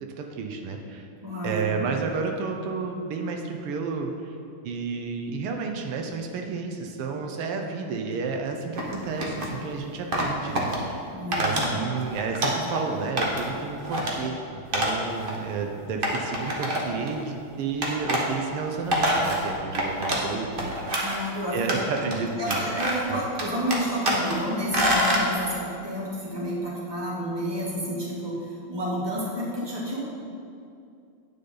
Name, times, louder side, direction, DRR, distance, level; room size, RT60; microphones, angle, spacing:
voice 1, 0.2-1.1 1.4-4.3 4.6-11.0 11.4-20.8 21.5-22.6 23.1-23.2, right 4 dB, 85° right, 3 dB, 1.8 m, -31 dB
voice 2, 1.2-1.7 11.1-11.7 21.0-21.7 22.4-30.0, equal, 10° right, -6 dB, 2.2 m, -30 dB
sound 1, 8.8-9.5 10.1-10.8 11.3-11.7 12.0-12.8 13.2-13.5 13.8-14.1 14.7-15.0 15.3-15.4 16.0-17.1 17.8-18.2 18.7-20.3 20.6-21.3 21.7-22.2 22.4-23.1 23.4-24.4 24.7-25.3, equal, 30° right, 1.1 m, -26 dB
10.5 x 9.4 x 3.9 m, 2.5 s
omnidirectional pair, 2.4 m